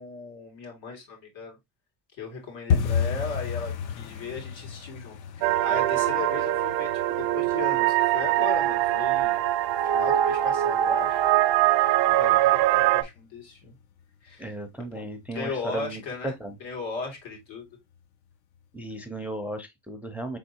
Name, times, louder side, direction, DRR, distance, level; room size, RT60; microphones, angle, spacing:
voice 1, 0.0-1.6 2.2-9.4 9.8-11.2 12.1-13.7 14.2-14.6 14.9-17.7, left 4 dB, 80° left, 2.4 m, -37 dB
sound 1, 2.7-13.4 13.7-14.4 14.6-14.9 15.2-15.6 15.9-16.0 16.5-17.0 17.3-17.4 17.9-18.0, left 7 dB, 60° left, 0.6 m, -34 dB
sound 2, 5.4-13.0, right 13 dB, 75° right, 0.6 m, -23 dB
voice 2, 14.4-16.5 18.7-20.4, right 1 dB, 5° right, 0.4 m, -35 dB
4.7 x 3.5 x 2.7 m
cardioid pair, 125°, 44 cm